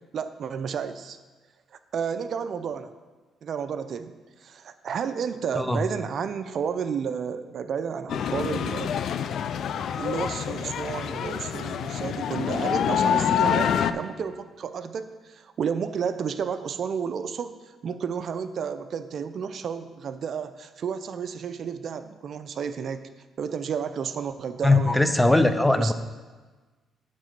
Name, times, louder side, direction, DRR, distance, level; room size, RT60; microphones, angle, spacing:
voice 1, 0.1-1.2 1.9-2.9 3.4-4.1 4.4-9.0 10.0-17.5 17.8-23.1 23.4-25.1 25.8-25.9, right 7 dB, 60° right, 11 dB, 0.4 m, -31 dB
sound 1, 8.1-13.9, left 8 dB, 65° left, 0.3 m, -26 dB
voice 2, 24.6-25.9, left 2 dB, 5° left, 9 dB, 0.5 m, -20 dB
9.5 x 3.8 x 6.6 m, 1.3 s
cardioid pair, 90°, 0 cm